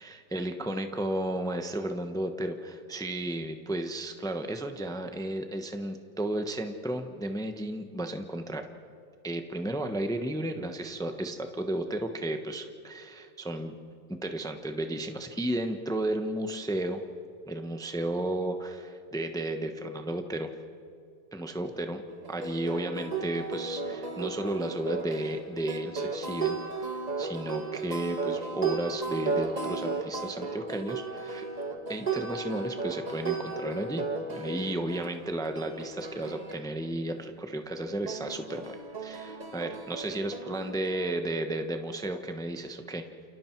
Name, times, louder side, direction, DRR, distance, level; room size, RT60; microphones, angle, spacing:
voice 1, 0.0-8.7 9.2-13.7 14.1-17.0 17.5-20.5 21.3-22.0 22.3-31.5 31.9-34.0 34.3-43.1, right 1 dB, 5° left, 6 dB, 0.7 m, -33 dB
sound 1, 22.1-36.6 38.1-41.1, right 4 dB, 25° right, 1.3 m, -35 dB
29.5 x 29.0 x 4.6 m, 2.4 s
omnidirectional pair, 2.0 m